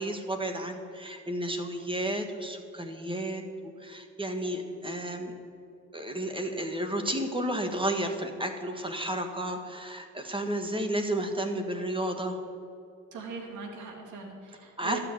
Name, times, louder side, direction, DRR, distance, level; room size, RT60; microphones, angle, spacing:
voice 1, 0.0-3.4 3.8-5.3 5.9-12.4 14.8-15.0, right 1 dB, 15° right, 6 dB, 1.6 m, -32 dB
voice 2, 13.1-15.0, right 5 dB, 85° right, 1 dB, 2.6 m, -40 dB
12.5 x 6.7 x 9.5 m, 2.6 s
cardioid pair, 90°, 30 cm